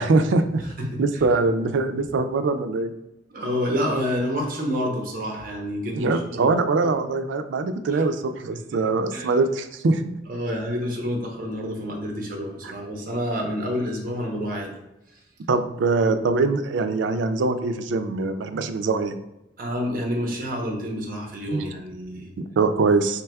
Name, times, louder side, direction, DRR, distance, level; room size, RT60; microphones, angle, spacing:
voice 1, 0.0-0.6 1.0-2.9 5.9-10.0 15.5-19.2 21.5-21.6 22.4-23.2, right 3 dB, 75° right, 9 dB, 0.4 m, -23 dB
voice 2, 0.8-1.3 3.3-6.5 6.8-7.0 7.9-8.0 9.1-9.4 10.3-14.8 15.1-15.2 19.6-22.3, equal, 50° right, 0 dB, 0.8 m, -28 dB
4.5 x 3.4 x 2.2 m, 0.90 s
head